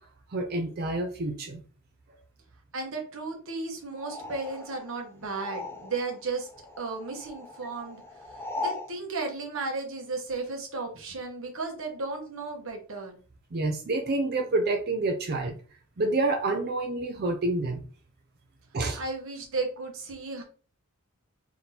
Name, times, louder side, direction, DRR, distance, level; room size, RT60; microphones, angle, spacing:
voice 1, 0.3-1.6 13.5-15.6 16.0-17.8 18.7-19.0, right 2 dB, 45° right, 4 dB, 0.5 m, -28 dB
voice 2, 2.7-6.5 6.8-8.0 8.3-13.2 18.9-20.4, right 3 dB, 65° right, 3 dB, 1.1 m, -34 dB
sound 1, 4.0-6.2 6.5-8.9, left 2 dB, 10° left, 0.5 m, -39 dB
3.9 x 3.5 x 2.9 m, 0.38 s
head